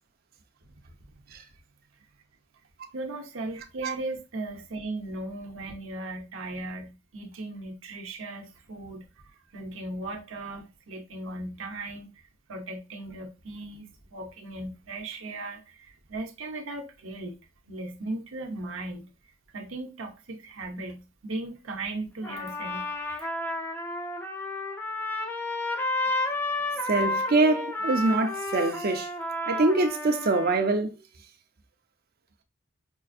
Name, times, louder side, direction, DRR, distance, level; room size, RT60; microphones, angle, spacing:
voice 1, 2.9-9.0 9.5-12.1 12.5-17.4 17.6-19.1 19.5-23.3, right 2 dB, 85° right, 0.8 m, -37 dB
Trumpet, 22.2-30.7, left 2 dB, 10° left, 0.5 m, -31 dB
voice 2, 26.8-29.1 29.5-30.9, right 2 dB, 50° right, 0.6 m, -24 dB
5.4 x 2.5 x 2.4 m
head